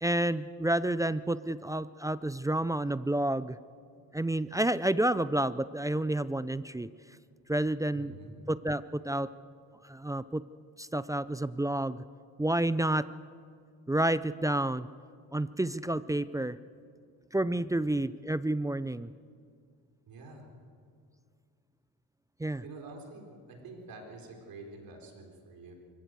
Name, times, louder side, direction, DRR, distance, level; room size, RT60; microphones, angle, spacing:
voice 1, 0.0-3.6 4.1-6.9 7.5-8.2 8.5-9.3 9.8-10.4 10.8-12.0 12.4-13.1 13.9-14.9 15.3-16.6 17.3-19.1 22.4-22.6, right 1 dB, 10° right, 15 dB, 0.4 m, -29 dB
voice 2, 7.9-8.5 20.1-20.5 22.6-25.7, right 3 dB, 60° right, 2 dB, 4.5 m, -47 dB
24.5 x 15.0 x 7.8 m, 2.2 s
cardioid pair, 95°, 38 cm